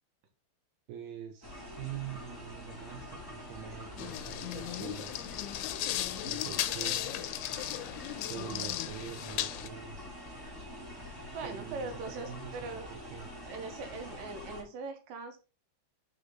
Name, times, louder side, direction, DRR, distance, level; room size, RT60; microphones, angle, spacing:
voice 1, 0.9-5.2 6.2-7.4 8.3-10.0 11.4-12.6 12.9-13.3, right 10 dB, 80° right, 2.3 m, -44 dB
sound 1, 1.4-14.6, equal, 15° right, 0.9 m, -46 dB
sound 2, 4.0-9.7, left 14 dB, 80° left, 2.8 m, -36 dB
voice 2, 11.3-12.9 13.5-15.4, right 3 dB, 60° right, 2.4 m, -41 dB
9.1 x 5.2 x 3.8 m
omnidirectional pair, 5.7 m